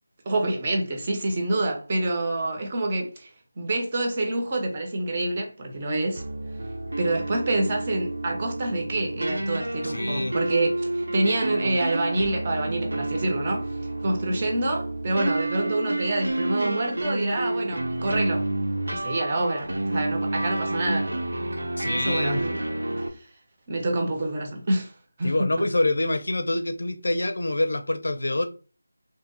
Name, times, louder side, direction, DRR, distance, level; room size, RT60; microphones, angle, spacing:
voice 1, 0.3-3.3 3.6-6.2 7.0-13.7 14.0-18.5 18.9-21.1 21.8-22.6 23.7-24.9 25.2-25.3, right 2 dB, 20° right, 0.4 m, -27 dB
sound 1, 6.2-23.1, right 1 dB, 80° right, 0.5 m, -29 dB
voice 2, 9.8-10.3 21.8-22.4 25.2-28.4, left 2 dB, 65° left, 0.4 m, -26 dB
2.6 x 2.0 x 2.5 m
figure-of-eight pair, 175°, 0 cm